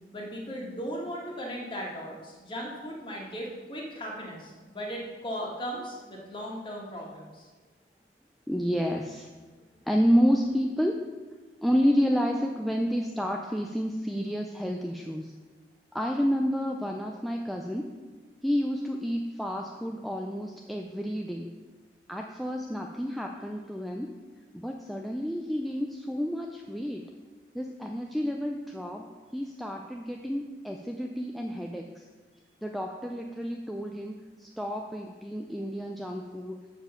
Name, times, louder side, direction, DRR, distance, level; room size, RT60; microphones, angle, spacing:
voice 1, 0.1-7.5, equal, 30° left, -2 dB, 1.8 m, -37 dB
voice 2, 8.5-9.3 9.9-11.0 11.6-15.3 15.9-17.9 18.4-21.5 22.1-24.1 24.5-27.1 27.5-32.1 32.6-36.6, equal, ahead, 1 dB, 0.4 m, -30 dB
7.0 x 6.7 x 5.7 m, 1.3 s
head